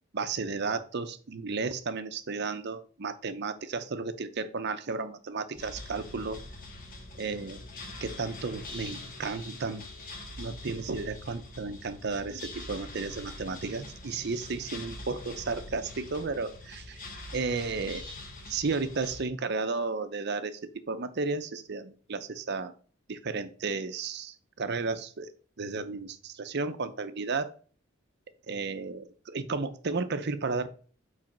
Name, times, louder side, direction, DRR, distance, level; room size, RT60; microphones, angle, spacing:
voice 1, 0.1-6.4 7.2-7.6 8.0-9.8 10.4-17.0 17.3-18.1 18.5-22.7 23.1-25.3 25.6-27.5 28.5-30.7, right 4 dB, 55° right, 10 dB, 0.7 m, -33 dB
sound 1, 5.6-19.2, left 2 dB, 45° left, 1.2 m, -44 dB
5.0 x 4.1 x 5.9 m, 0.42 s
head